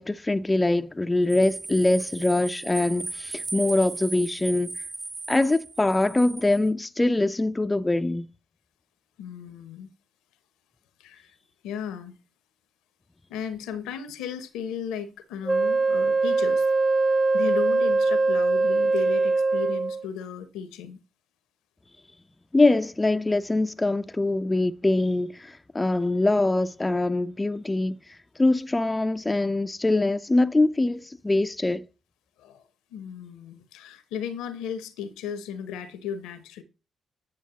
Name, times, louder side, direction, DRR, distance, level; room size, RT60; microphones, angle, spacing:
voice 1, 0.0-4.7 5.3-8.3 22.5-28.0 28.4-31.9, left 2 dB, 20° left, 0.4 m, -23 dB
sound 1, 1.3-6.7, right 3 dB, 40° right, 1.0 m, -37 dB
voice 2, 9.2-9.9 11.0-11.4 11.6-12.2 13.3-16.7 17.1-21.0 32.4-32.6 32.9-36.6, left 8 dB, 75° left, 0.6 m, -35 dB
Wind instrument woodwind instrument, 15.5-20.1, right 3 dB, 20° right, 0.8 m, -22 dB
9.1 x 6.3 x 2.8 m
hypercardioid pair, 45°, 0 cm